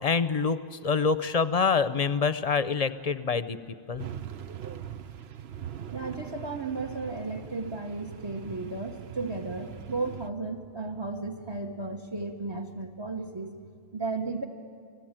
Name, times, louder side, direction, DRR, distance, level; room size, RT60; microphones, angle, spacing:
voice 1, 0.0-3.6 3.9-4.1, left 5 dB, 40° left, 13 dB, 0.8 m, -26 dB
sound 1, 4.0-10.3, right 9 dB, 80° right, 1.0 m, -41 dB
voice 2, 5.9-13.6 13.9-14.4, right 3 dB, 25° right, 4 dB, 1.2 m, -34 dB
29.0 x 19.0 x 9.0 m, 2.4 s
omnidirectional pair, 1.0 m